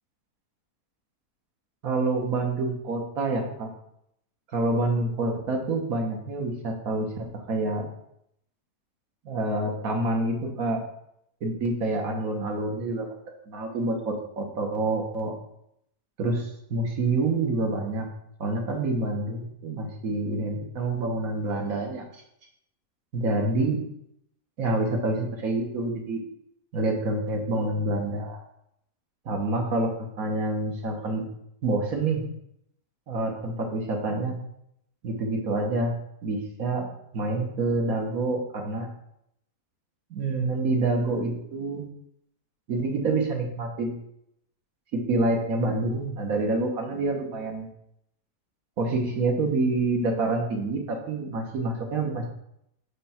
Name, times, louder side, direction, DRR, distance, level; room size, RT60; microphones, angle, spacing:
voice 1, 1.8-3.7 4.5-7.9 9.2-10.8 11.4-13.1 13.5-15.3 16.2-18.1 18.4-22.0 23.1-23.8 24.6-26.2 26.7-28.4 29.2-31.2 31.6-32.2 33.1-34.4 35.0-35.9 36.2-36.9 37.1-38.9 40.1-41.9 42.7-44.0 44.9-47.7 48.8-52.3, right 2 dB, 60° right, 2 dB, 1.6 m, -27 dB
7.5 x 3.3 x 5.7 m, 0.75 s
omnidirectional pair, 1.7 m